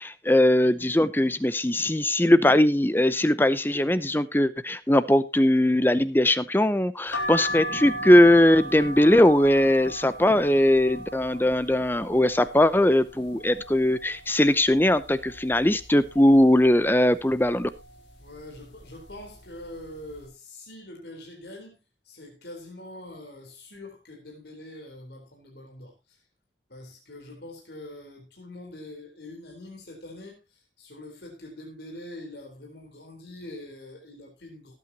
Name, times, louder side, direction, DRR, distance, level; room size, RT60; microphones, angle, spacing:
voice 1, 0.0-17.7, left 1 dB, 10° left, 0.7 m, -20 dB
sound 1, 7.1-12.8 13.3-14.0 14.4-14.5 14.7-15.8 16.3-16.7 17.4-17.8 18.5-18.8 19.1-19.3, equal, 80° left, 3.7 m, -35 dB
voice 2, 18.2-21.8 22.0-26.2 26.7-34.7, left 1 dB, 60° left, 4.1 m, -44 dB
18.5 x 8.8 x 2.9 m
head